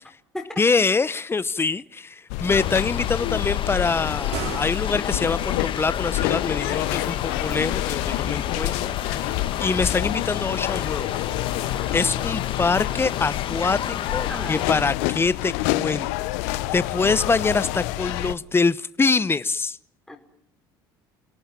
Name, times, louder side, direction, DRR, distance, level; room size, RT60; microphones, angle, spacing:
voice 1, 0.6-9.3 9.6-11.1 11.9-19.8, left 4 dB, 20° left, 17 dB, 1.0 m, -25 dB
sound 1, 2.3-18.3, left 18 dB, 70° left, 1.0 m, -28 dB
sound 2, 2.5-14.9, left 9 dB, 45° left, 1.7 m, -31 dB
sound 3, 4.2-5.5, right 9 dB, 65° right, 2.8 m, -36 dB
voice 2, 14.3-14.7 20.1-20.2, left 1 dB, 5° left, 2 dB, 5.1 m, -35 dB
29.0 x 18.0 x 8.9 m, 0.72 s
hypercardioid pair, 70°, 12 cm